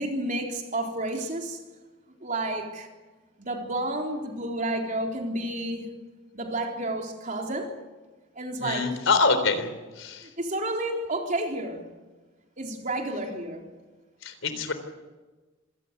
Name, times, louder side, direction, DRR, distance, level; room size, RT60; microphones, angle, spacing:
voice 1, 0.0-1.6 2.2-2.9 3.4-5.9 6.3-7.8 8.4-9.0 10.2-11.9 12.6-13.7, right 1 dB, 40° right, 3.9 m, -31 dB
voice 2, 8.6-9.7 10.0-10.3 14.2-14.7, left 4 dB, 80° left, 3.8 m, -25 dB
27.0 x 17.5 x 8.3 m
head